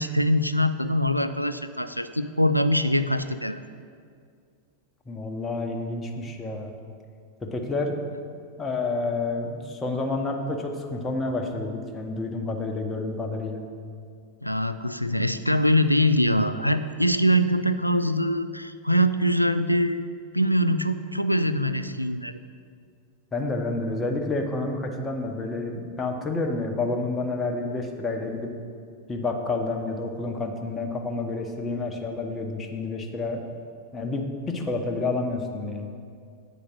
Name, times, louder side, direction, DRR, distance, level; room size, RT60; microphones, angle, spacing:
voice 1, 0.0-3.6 14.4-20.1 20.3-22.3, equal, 90° left, 11 dB, 0.3 m, -23 dB
voice 2, 5.1-6.7 7.4-8.0 8.6-13.6 23.3-28.5 29.1-33.4 33.9-35.9, left 3 dB, 15° left, 3 dB, 0.9 m, -29 dB
8.7 x 5.0 x 6.3 m, 2.3 s
figure-of-eight pair, 90°, 0 cm